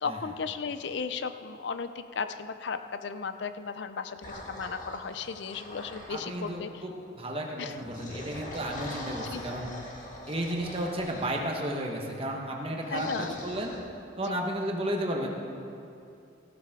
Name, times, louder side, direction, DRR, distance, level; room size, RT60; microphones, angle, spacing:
voice 1, 0.0-6.8 7.6-7.7 9.3-9.4 12.9-13.4 14.2-14.4, left 5 dB, 60° left, 10 dB, 0.5 m, -35 dB
sound 1, 4.2-6.6 7.7-11.3 12.8-13.8, left 1 dB, 40° left, 1.9 m, -42 dB
voice 2, 6.1-9.7 10.3-13.7 14.2-15.3, right 1 dB, 30° right, 0 dB, 1.2 m, -33 dB
15.0 x 13.0 x 3.7 m, 2.6 s
head